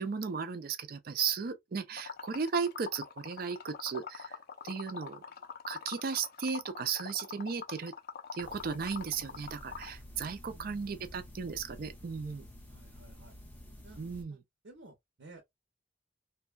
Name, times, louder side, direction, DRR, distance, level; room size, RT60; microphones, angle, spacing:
voice 1, 0.0-4.4 4.6-5.2 5.7-7.9 8.3-12.5 14.0-14.4, right 6 dB, 50° right, 0.4 m, -35 dB
Liquid, 2.0-10.0, left 6 dB, 55° left, 0.5 m, -44 dB
sound 1, 8.4-14.2, left 1 dB, 10° left, 0.6 m, -51 dB
voice 2, 10.4-11.0 12.7-13.3 13.8-14.0 14.3-14.4 14.6-15.5, right 2 dB, 85° right, 0.7 m, -55 dB
2.6 x 2.2 x 2.4 m
head